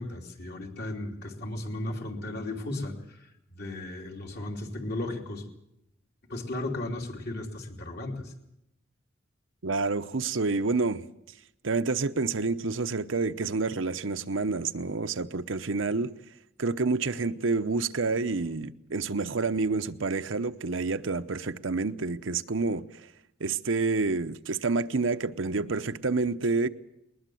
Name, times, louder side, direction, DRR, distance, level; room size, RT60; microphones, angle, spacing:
voice 1, 0.0-3.0 3.5-5.5 6.3-8.2, left 1 dB, 55° left, 3.0 m, -35 dB
voice 2, 9.6-11.0 11.6-16.1 16.6-22.8 23.4-26.7, right 3 dB, 85° right, 0.9 m, -28 dB
20.5 x 20.5 x 7.7 m
head